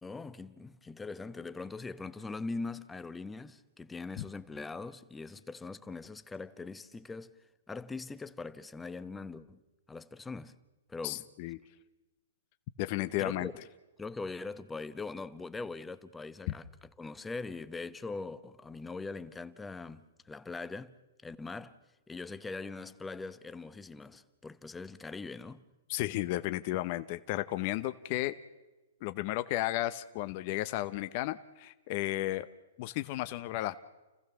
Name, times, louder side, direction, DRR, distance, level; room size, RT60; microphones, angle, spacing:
voice 1, 0.0-7.3 7.7-9.6 9.9-10.6 10.9-11.3 13.2-13.5 14.0-20.9 21.2-21.8 22.1-25.6, left 3 dB, 10° left, 0.9 m, -41 dB
voice 2, 11.0-11.6 12.8-13.5 25.9-28.3 29.0-32.5 32.8-33.8, left 16 dB, 45° left, 0.8 m, -33 dB
30.0 x 15.0 x 6.9 m
hypercardioid pair, 135°, 0 cm